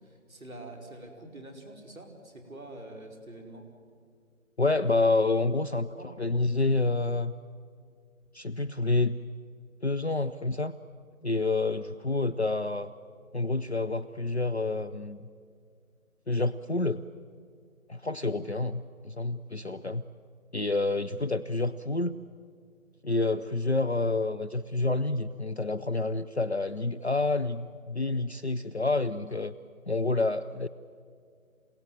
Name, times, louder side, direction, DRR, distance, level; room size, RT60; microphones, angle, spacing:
voice 1, 0.0-3.7 5.9-6.1, right 1 dB, 5° right, -16 dB, 3.7 m, -46 dB
voice 2, 4.6-7.3 8.3-9.2 9.8-10.7 11.2-12.9 13.3-15.3 16.3-17.0 17.9-20.0 20.5-22.1 23.0-29.5 29.9-30.7, left 3 dB, 50° left, 12 dB, 0.6 m, -28 dB
27.5 x 18.0 x 9.3 m, 2.1 s
figure-of-eight pair, 175°, 42 cm